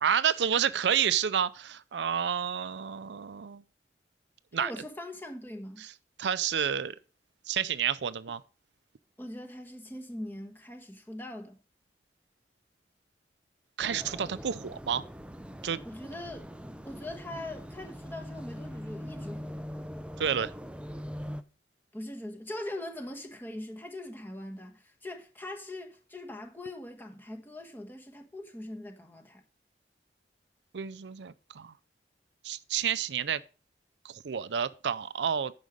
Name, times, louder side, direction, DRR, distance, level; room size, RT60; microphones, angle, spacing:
voice 1, 0.0-3.6 4.5-4.7 6.2-7.0 7.5-8.4 13.8-15.0 15.6-15.8 20.2-20.5 30.7-31.7 32.4-33.4 34.0-35.5, right 8 dB, 85° right, 0.5 m, -29 dB
voice 2, 4.6-5.8 9.2-11.6 15.8-16.5 16.8-19.6 21.9-29.4, left 1 dB, 10° left, 1.4 m, -41 dB
sound 1, 13.8-21.4, equal, 5° right, 0.5 m, -42 dB
9.3 x 6.1 x 5.1 m
head